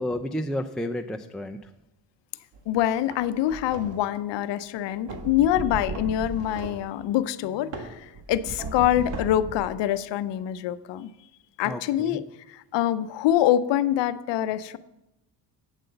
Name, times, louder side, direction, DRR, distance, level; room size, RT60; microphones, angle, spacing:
voice 1, 0.0-1.7 11.6-12.2, left 1 dB, ahead, 3 dB, 0.3 m, -31 dB
sound 1, 2.5-2.7 3.1-4.1 5.1-5.3 5.9-6.9 7.7-8.0 8.6-9.2, right 3 dB, 85° right, 1.7 m, -41 dB
voice 2, 2.7-11.1 11.6-14.8, left 12 dB, 80° left, 14 dB, 0.6 m, -25 dB
sound 2, 5.1-6.6 8.1-10.0, right 2 dB, 35° right, 1.0 m, -36 dB
8.2 x 7.7 x 7.8 m, 0.91 s
cardioid pair, 130°, 42 cm